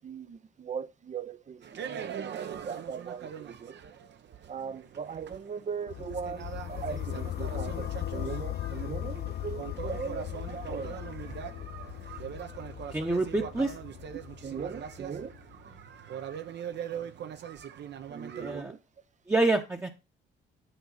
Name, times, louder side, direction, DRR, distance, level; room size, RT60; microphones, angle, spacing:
voice 1, 0.0-3.8 4.5-11.0 14.4-15.3 18.1-18.8, right 6 dB, 40° right, 0.7 m, -39 dB
sound 1, 1.6-18.6, right 9 dB, 60° right, 1.0 m, -42 dB
sound 2, 5.9-15.8, left 12 dB, 55° left, 0.5 m, -38 dB
voice 2, 12.9-13.8 18.4-18.7 19.3-19.9, right 2 dB, 10° right, 1.0 m, -27 dB
10.0 x 4.6 x 5.7 m
cardioid pair, 90°, 20 cm